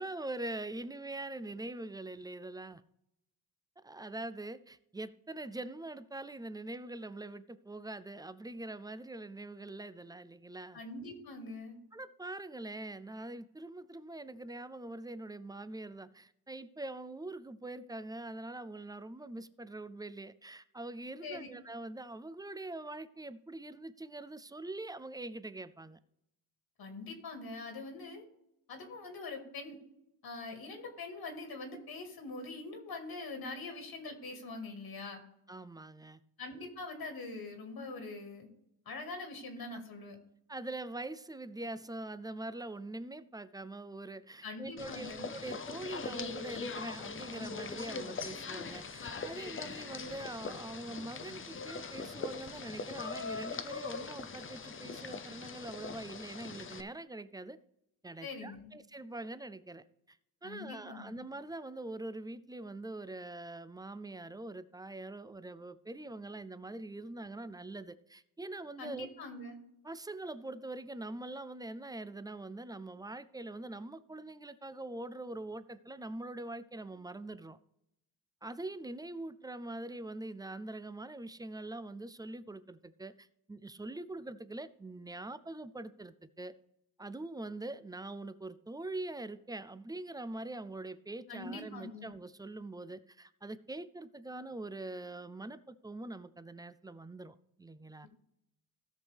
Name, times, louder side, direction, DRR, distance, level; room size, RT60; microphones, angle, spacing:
voice 1, 0.0-2.8 3.8-10.8 11.9-26.0 35.5-36.2 39.7-39.8 40.5-57.6 58.0-69.1 69.8-77.6 78.4-86.5 87.0-98.1, right 2 dB, 10° right, 0.3 m, -43 dB
voice 2, 10.7-11.8 21.2-21.5 26.8-28.2 28.7-29.8 30.2-35.2 36.4-38.5 38.9-40.2 44.4-45.3 58.2-58.7 60.4-61.3 68.8-69.6 91.3-92.1, left 3 dB, 70° left, 2.0 m, -43 dB
sound 1, 44.8-56.8, left 4 dB, 30° left, 0.7 m, -41 dB
17.0 x 6.2 x 3.4 m
wide cardioid pair, 120°, 38 cm